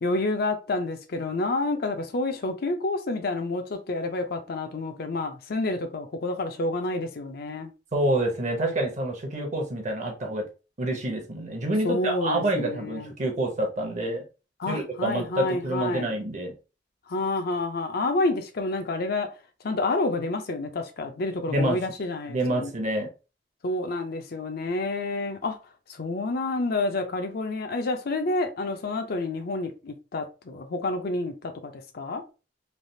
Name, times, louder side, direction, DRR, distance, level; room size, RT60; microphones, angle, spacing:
voice 1, 0.0-7.7 11.8-13.1 14.6-16.1 17.1-19.3 19.6-22.7 23.6-25.6 25.9-32.2, left 2 dB, 55° left, 0.5 m, -29 dB
voice 2, 7.9-10.4 10.8-14.2 14.7-16.5 21.5-21.8 22.3-23.1, right 1 dB, 40° right, 0.8 m, -27 dB
3.3 x 2.4 x 2.6 m
head